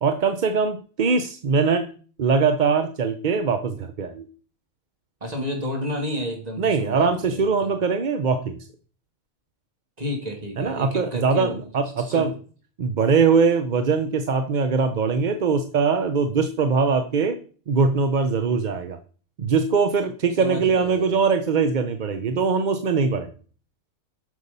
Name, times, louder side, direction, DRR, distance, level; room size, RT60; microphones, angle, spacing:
voice 1, 0.0-1.9 2.2-4.3 6.6-8.6 10.6-12.3 12.8-17.4 17.7-19.0 19.4-23.3, right 5 dB, 45° right, 8 dB, 0.6 m, -22 dB
voice 2, 5.2-7.7 10.0-11.7 12.0-12.3 20.4-21.1, left 1 dB, 30° right, 2 dB, 2.6 m, -31 dB
8.2 x 6.6 x 5.3 m, 0.42 s
omnidirectional pair, 1.4 m